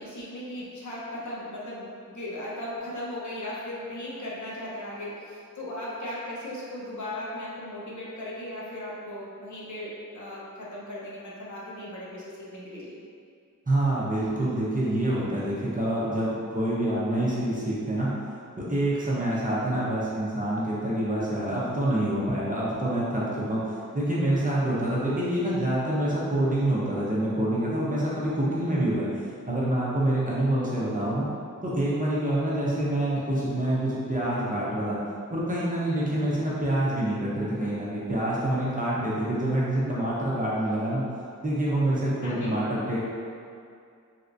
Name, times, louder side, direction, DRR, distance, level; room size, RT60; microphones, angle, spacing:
voice 1, 0.0-12.9 42.2-42.5, left 1 dB, 60° left, -6 dB, 0.8 m, -37 dB
voice 2, 13.7-18.1 18.6-23.6 23.9-29.1 29.5-31.3 31.6-35.0 35.3-41.0 41.4-43.0, right 1 dB, 25° right, -8 dB, 0.7 m, -26 dB
3.3 x 2.8 x 2.5 m, 2.4 s
wide cardioid pair, 80°, 33 cm